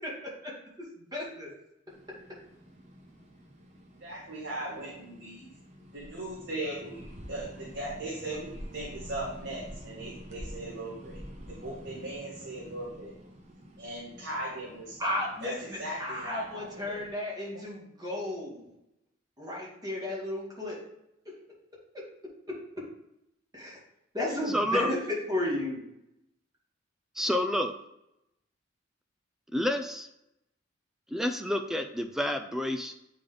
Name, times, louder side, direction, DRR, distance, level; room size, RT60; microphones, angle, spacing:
voice 1, 1.0-1.5 15.0-18.8 19.4-20.8 21.3-21.4 23.5-23.8 24.1-25.8, left 1 dB, 20° right, -5 dB, 2.1 m, -33 dB
sound 1, 1.9-17.1, equal, 35° right, 1.1 m, -48 dB
voice 2, 4.0-5.4 5.9-11.2 11.5-13.1 13.8-15.1 15.4-15.5 15.8-16.7, right 1 dB, 60° right, -6 dB, 1.6 m, -38 dB
voice 3, 24.5-24.9 27.2-27.7 29.5-30.1 31.1-32.9, left 1 dB, ahead, 6 dB, 0.4 m, -29 dB
8.4 x 3.8 x 3.4 m, 0.83 s
head